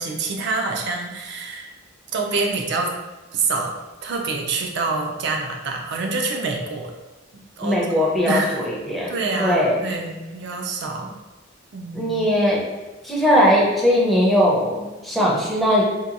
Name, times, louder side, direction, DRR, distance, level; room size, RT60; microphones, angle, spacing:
voice 1, 0.0-1.7 2.1-2.9 3.3-3.7 4.0-6.9 7.3-8.6 9.1-11.1 11.7-12.1, right 3 dB, 60° right, 2 dB, 0.4 m, -26 dB
voice 2, 7.6-9.1 9.4-9.8 11.9-12.6 13.0-15.8, equal, ahead, -6 dB, 0.5 m, -19 dB
2.8 x 2.2 x 2.5 m, 1.1 s
head